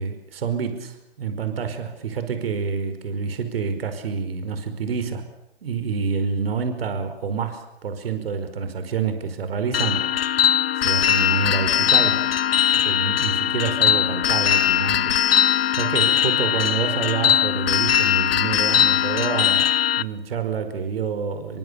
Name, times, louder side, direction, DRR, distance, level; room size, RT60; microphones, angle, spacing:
voice 1, 0.0-5.2 5.6-10.0 10.7-12.2 12.8-19.7 20.0-21.6, right 6 dB, 65° right, 9 dB, 5.1 m, -27 dB
sound 1, 9.7-20.0, left 10 dB, 65° left, 1.1 m, -20 dB
28.0 x 24.0 x 7.1 m, 0.81 s
hypercardioid pair, 135°, 32 cm